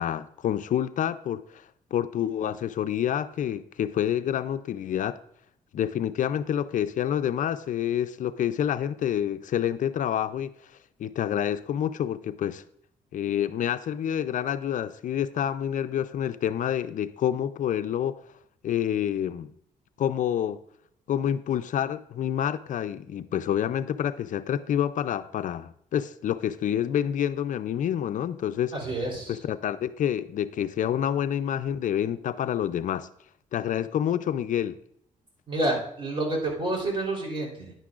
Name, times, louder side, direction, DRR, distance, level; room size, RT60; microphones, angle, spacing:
voice 1, 0.0-1.6 1.9-5.2 5.7-10.5 11.0-12.6 13.1-18.2 18.6-19.5 20.0-20.6 21.1-28.7 29.3-33.1 33.5-34.8, left 10 dB, 65° left, 0.4 m, -28 dB
voice 2, 28.7-29.4 35.5-37.7, right 2 dB, 35° right, 3.6 m, -29 dB
10.5 x 9.8 x 2.4 m
cardioid pair, 85°, 14 cm